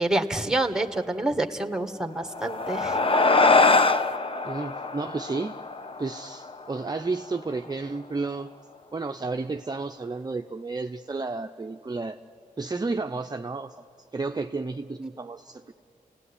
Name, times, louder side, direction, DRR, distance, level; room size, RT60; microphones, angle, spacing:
voice 1, 0.0-3.0, right 2 dB, 5° right, 6 dB, 1.8 m, -27 dB
sound 1, 2.2-7.0, left 3 dB, 40° left, 1.0 m, -23 dB
voice 2, 4.4-5.6 6.0-8.5 8.9-12.2 12.6-13.7 14.1-15.7, right 3 dB, 30° right, 5 dB, 0.8 m, -32 dB
29.5 x 17.5 x 10.0 m, 2.5 s
cardioid pair, 65°, 15 cm